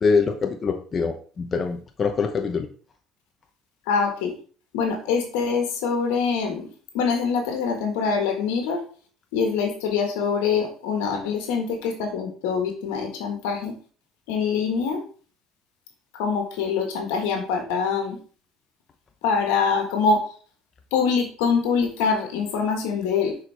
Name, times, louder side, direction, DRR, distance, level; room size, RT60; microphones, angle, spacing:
voice 1, 0.0-2.7, left 5 dB, 40° left, 4 dB, 0.8 m, -24 dB
voice 2, 3.9-4.3 4.7-8.8 9.3-13.7 14.3-15.0 16.1-18.2 19.2-20.2 20.9-23.4, left 5 dB, 85° left, 3 dB, 1.6 m, -24 dB
6.2 x 4.8 x 3.4 m, 0.42 s
supercardioid pair, 85°, 0 cm